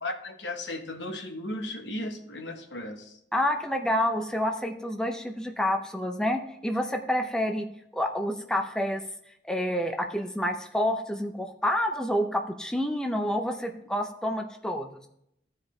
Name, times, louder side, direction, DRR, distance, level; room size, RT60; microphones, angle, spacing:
voice 1, 0.0-3.2, left 1 dB, 85° left, 5 dB, 1.1 m, -36 dB
voice 2, 3.3-7.7 7.9-9.0 9.4-15.0, left 1 dB, 5° left, 4 dB, 0.5 m, -28 dB
14.5 x 4.8 x 3.1 m, 0.76 s
head